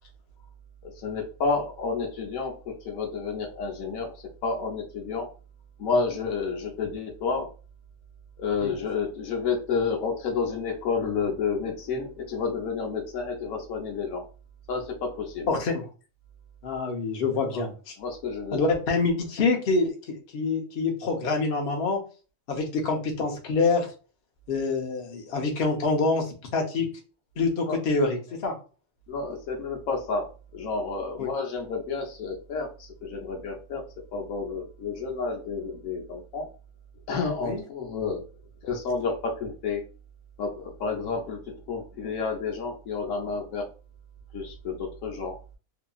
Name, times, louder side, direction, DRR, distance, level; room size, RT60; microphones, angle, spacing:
voice 1, 0.8-5.3 5.8-7.5 8.4-14.3 14.7-15.5 17.5-17.6 18.0-18.6 27.7-27.8 29.1-33.8 34.1-36.5 37.1-38.2 38.6-39.9 40.4-43.7 44.3-45.4, left 4 dB, 85° left, 2 dB, 1.1 m, -30 dB
voice 2, 15.5-15.8 16.6-17.9 18.5-22.0 22.5-23.9 24.5-26.9 27.4-28.5 31.2-31.3 37.4-37.6, left 3 dB, 55° left, 1 dB, 0.8 m, -26 dB
2.8 x 2.5 x 2.2 m, 0.35 s
omnidirectional pair, 1.4 m